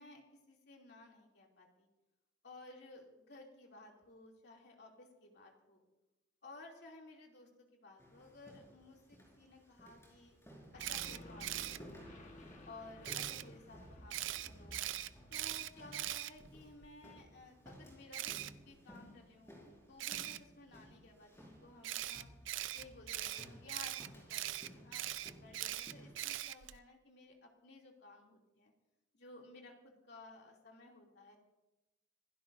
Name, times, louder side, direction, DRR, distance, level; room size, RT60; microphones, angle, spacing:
voice 1, 0.0-1.9 2.4-5.8 6.4-10.4 10.7-12.3 12.7-14.8 15.3-22.3 22.7-28.7 29.1-31.4, left 2 dB, 65° left, 0 dB, 2.8 m, -57 dB
sound 1, 8.0-26.1, equal, 15° left, 5.5 m, -58 dB
sound 2, 10.7-16.0, left 1 dB, 40° left, 1.5 m, -56 dB
Camera, 10.8-11.8 13.0-13.4 14.1-16.9 18.1-18.5 20.0-20.4 21.8-26.8, right 13 dB, 90° right, 0.5 m, -41 dB
26.0 x 16.5 x 2.7 m, 1.0 s
head